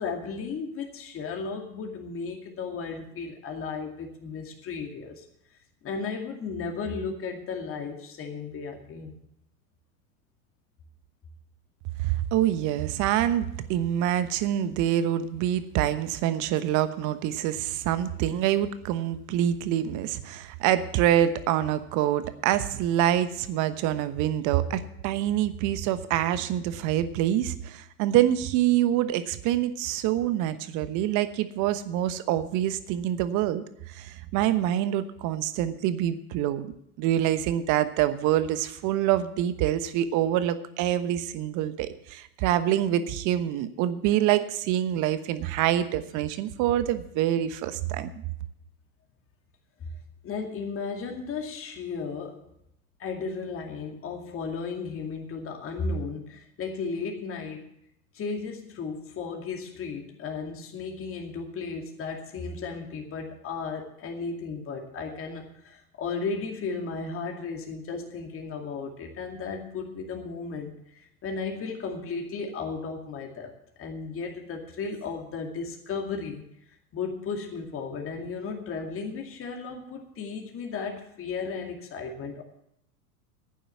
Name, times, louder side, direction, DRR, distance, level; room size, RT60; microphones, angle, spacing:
voice 1, 0.0-5.2 5.8-9.2 49.8-49.9 50.2-52.4 53.0-57.7 58.1-73.5 73.8-76.4 76.9-82.4, left 4 dB, 30° left, 3 dB, 2.4 m, -35 dB
voice 2, 12.0-36.7 37.0-48.2, right 12 dB, 40° right, 13 dB, 1.1 m, -26 dB
11.5 x 9.1 x 7.2 m, 0.77 s
hypercardioid pair, 100°, 44 cm